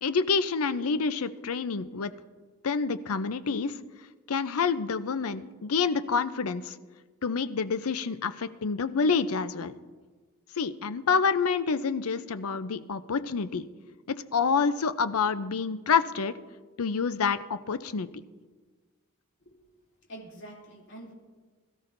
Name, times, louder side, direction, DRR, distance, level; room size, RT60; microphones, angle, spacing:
voice 1, 0.0-2.1 2.6-3.7 4.3-6.8 7.2-9.7 10.6-13.6 14.1-16.3 16.8-18.1, left 5 dB, 75° left, 12 dB, 0.6 m, -27 dB
voice 2, 20.1-21.1, right 1 dB, 55° left, -3 dB, 3.0 m, -45 dB
21.0 x 13.0 x 2.6 m, 1.4 s
head